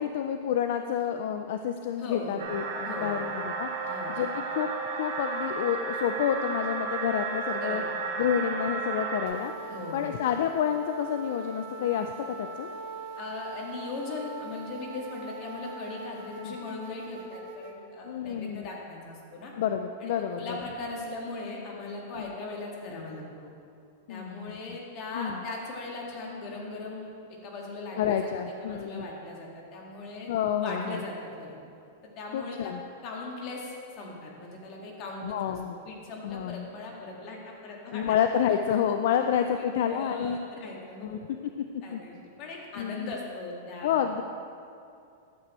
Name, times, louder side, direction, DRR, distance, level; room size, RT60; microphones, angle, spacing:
voice 1, 0.0-7.8 8.2-12.1 12.4-12.7 16.4-16.6 18.0-18.7 19.6-20.4 22.1-22.2 24.1-24.8 25.1-25.4 28.0-29.1 30.3-31.0 32.3-32.8 35.2-35.8 36.2-36.7 37.9-40.4 41.0-41.2 41.9-42.0 42.8-43.1 43.8-44.2, left 9 dB, 65° left, 7 dB, 0.4 m, -29 dB
voice 2, 2.0-2.4 2.8-3.3 3.8-4.1 7.6-7.8 8.2-8.4 9.7-10.2 13.2-19.5 20.0-23.5 24.1-30.3 30.6-31.6 32.0-32.7 33.0-38.2 39.6-41.2 41.8-44.2, left 3 dB, 40° left, -2 dB, 1.8 m, -39 dB
sound 1, 2.4-9.3, right 4 dB, 85° right, 2.2 m, -33 dB
sound 2, 9.3-17.8, right 3 dB, 55° right, 0.9 m, -42 dB
11.5 x 7.6 x 3.1 m, 2.5 s
supercardioid pair, 145°, 0 cm